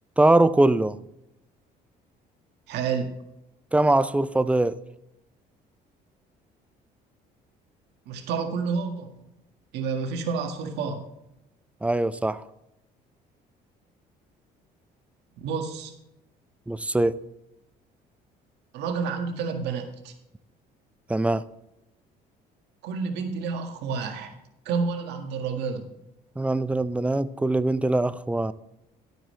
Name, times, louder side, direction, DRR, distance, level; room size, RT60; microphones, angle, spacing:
voice 1, 0.2-1.0 3.7-4.7 11.8-12.4 16.7-17.2 21.1-21.4 26.4-28.5, right 2 dB, 5° right, 14 dB, 0.5 m, -22 dB
voice 2, 2.7-3.1 8.1-9.1 9.7-11.0 15.4-15.9 18.7-20.1 22.8-24.3 24.7-25.9, right 5 dB, 85° right, 4 dB, 1.8 m, -29 dB
12.5 x 9.1 x 3.3 m, 0.86 s
cardioid pair, 110°, 17 cm